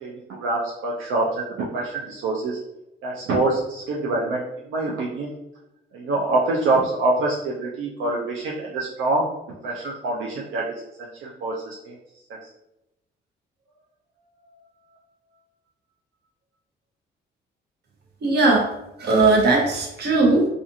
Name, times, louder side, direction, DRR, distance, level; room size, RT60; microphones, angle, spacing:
voice 1, 0.0-2.6 3.0-5.3 5.9-9.3 9.6-10.7 11.0-12.0 12.3-12.4, right 2 dB, 80° right, -3 dB, 0.5 m, -25 dB
voice 2, 18.2-18.7 19.0-20.5, right 3 dB, 55° right, -1 dB, 0.8 m, -18 dB
2.5 x 2.4 x 2.7 m, 0.88 s
cardioid pair, 90°, 20 cm